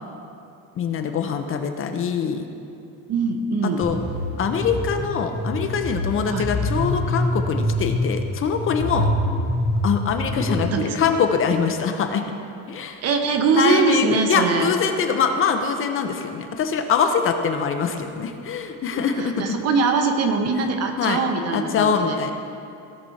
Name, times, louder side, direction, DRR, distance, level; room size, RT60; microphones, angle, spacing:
voice 1, 0.8-2.5 3.6-4.0 4.4-9.1 9.8-12.2 12.7-13.0 13.5-19.6 21.0-21.2 21.5-22.3, left 6 dB, 40° left, 6 dB, 0.7 m, -23 dB
voice 2, 3.1-3.9 6.3-6.5 10.7-11.1 13.0-14.7 19.2-22.2, right 4 dB, 45° right, 5 dB, 1.0 m, -22 dB
sound 1, 3.8-10.7, left 1 dB, 30° right, 2.1 m, -25 dB
17.0 x 6.2 x 4.1 m, 2.6 s
cardioid pair, 155°, 34 cm